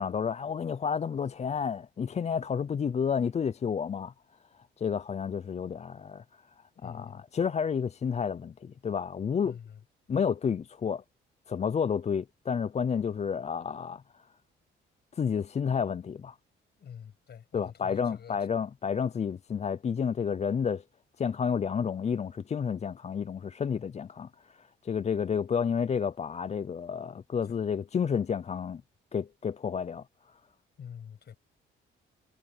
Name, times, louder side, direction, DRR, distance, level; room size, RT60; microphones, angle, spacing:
voice 1, 0.0-4.1 4.8-6.2 6.8-9.6 10.1-11.0 11.5-14.0 15.1-16.3 17.5-20.8 21.2-24.3 24.6-28.8 29.1-30.0, left 7 dB, 35° left, 0.5 m, -30 dB
voice 2, 6.7-7.2 9.4-9.8 16.8-18.4 27.4-27.6 30.8-31.4, left 8 dB, 55° left, 7.9 m, -46 dB
cardioid pair, 90°, 20 cm